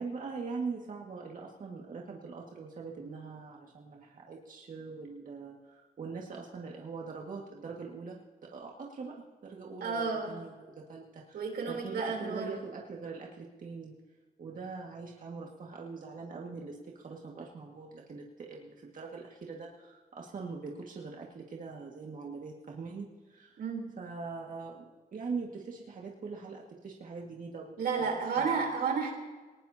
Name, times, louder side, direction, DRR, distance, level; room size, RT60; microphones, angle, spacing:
voice 1, 0.0-13.9 14.4-23.6 24.0-24.9 25.1-27.7 28.0-28.7, right 4 dB, 55° right, -2 dB, 2.0 m, -42 dB
voice 2, 9.8-10.3 11.3-12.5 23.6-23.9 27.8-29.1, right 5 dB, 90° right, 1 dB, 3.7 m, -31 dB
21.0 x 19.5 x 2.9 m, 1.4 s
cardioid pair, 100°, 16 cm